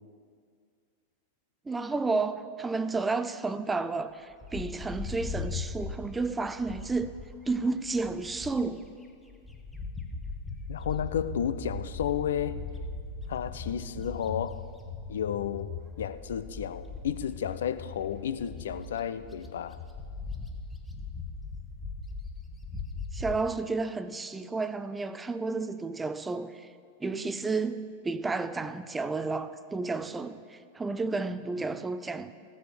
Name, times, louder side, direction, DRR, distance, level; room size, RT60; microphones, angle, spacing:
voice 1, 1.7-7.1 7.5-8.8 23.1-26.6 27.0-32.3, right 3 dB, 10° right, 0.5 m, -31 dB
Bird, 4.4-8.9 9.3-23.5, left 4 dB, 5° left, 1.2 m, -39 dB
voice 2, 10.7-12.6 13.3-14.6 15.1-19.8, left 9 dB, 60° left, 0.5 m, -32 dB
15.5 x 7.8 x 6.8 m
figure-of-eight pair, 90°, 0 cm